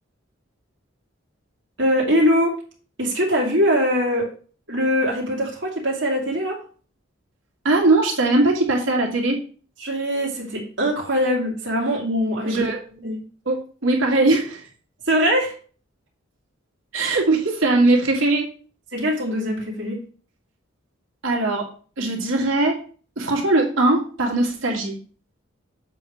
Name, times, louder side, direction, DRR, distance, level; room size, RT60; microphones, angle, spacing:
voice 1, 1.8-2.5 3.0-4.3 4.7-6.6 9.8-12.7 13.0-13.2 15.0-15.5 18.9-20.0, equal, 65° right, -2 dB, 2.3 m, -22 dB
voice 2, 7.6-9.4 12.4-12.8 13.5-14.6 16.9-18.5 21.2-21.7 22.0-22.8 23.2-24.9, right 2 dB, 80° right, -1 dB, 2.3 m, -20 dB
7.5 x 3.6 x 6.4 m, 0.41 s
head